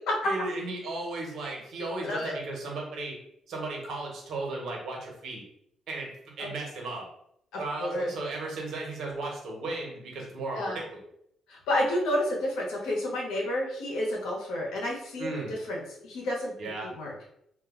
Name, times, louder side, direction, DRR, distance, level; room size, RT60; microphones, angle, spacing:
voice 1, 0.2-3.1 3.5-5.4 5.9-6.1 6.4-7.1 7.6-11.1 15.2-15.5 16.6-16.9, right 2 dB, 70° right, -1 dB, 1.1 m, -35 dB
voice 2, 2.0-2.4 6.4-6.5 7.5-8.1 10.5-10.8 11.5-16.5 16.8-17.1, left 1 dB, 90° left, -2 dB, 0.9 m, -30 dB
2.5 x 2.2 x 3.6 m, 0.73 s
cardioid pair, 90°, 0 cm